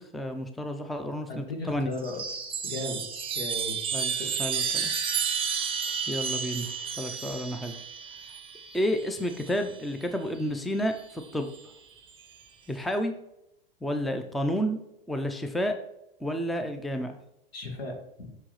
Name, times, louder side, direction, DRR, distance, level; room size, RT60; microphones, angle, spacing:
voice 1, 0.0-1.9 3.9-4.9 6.1-6.7 7.0-7.7 8.7-11.5 12.7-13.1 13.8-14.8 15.1-15.8 16.2-17.2, equal, ahead, 6 dB, 0.5 m, -30 dB
voice 2, 1.3-2.2 2.6-3.0 3.3-3.7 4.2-4.3 17.5-18.3, left 2 dB, 85° left, 2 dB, 1.7 m, -36 dB
Chime, 1.9-9.8 11.0-11.6, right 7 dB, 20° right, 0.8 m, -32 dB
6.1 x 5.6 x 3.1 m, 0.82 s
hypercardioid pair, 100°, 30 cm